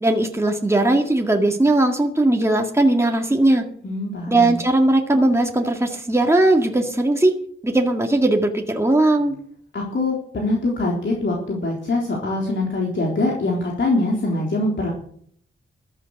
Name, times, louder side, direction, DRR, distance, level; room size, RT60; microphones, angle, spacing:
voice 1, 0.0-3.6 4.3-7.3 7.6-9.4, right 2 dB, 10° right, 2 dB, 1.9 m, -18 dB
voice 2, 3.8-4.6 9.7-14.9, left 2 dB, 60° left, -2 dB, 3.9 m, -23 dB
14.0 x 12.0 x 6.6 m, 0.62 s
wide cardioid pair, 100°, 21 cm